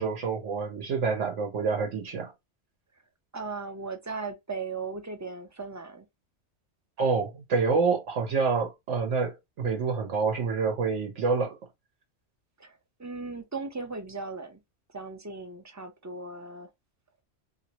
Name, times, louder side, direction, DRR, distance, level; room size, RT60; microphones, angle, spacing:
voice 1, 0.0-2.3 7.0-11.6, right 4 dB, 85° right, 1.2 m, -27 dB
voice 2, 3.3-6.1 12.6-14.6 14.9-16.7, right 4 dB, 25° right, 0.4 m, -37 dB
3.0 x 2.9 x 2.8 m
omnidirectional pair, 1.2 m